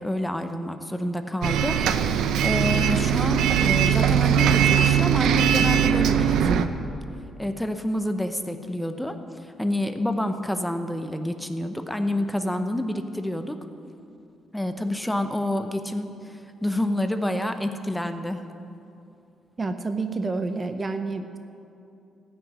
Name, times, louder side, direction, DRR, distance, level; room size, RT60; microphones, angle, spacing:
voice 1, 0.0-6.6 7.4-13.6 14.5-18.4, left 1 dB, 5° left, 8 dB, 0.8 m, -28 dB
Bus, 1.4-6.7, right 9 dB, 80° right, 0.6 m, -20 dB
voice 2, 19.6-21.4, right 3 dB, 30° right, 8 dB, 0.7 m, -29 dB
14.5 x 6.4 x 9.7 m, 2.6 s
cardioid pair, 90°, 0 cm